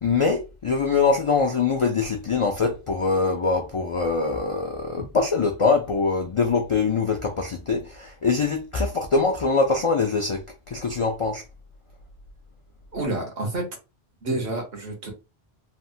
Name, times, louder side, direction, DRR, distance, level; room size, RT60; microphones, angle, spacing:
voice 1, 0.0-10.4 10.7-11.4, left 4 dB, 60° left, 0.3 m, -23 dB
voice 2, 12.9-13.6 14.2-15.1, right 2 dB, 75° right, 1.3 m, -29 dB
3.3 x 2.1 x 2.6 m
omnidirectional pair, 1.0 m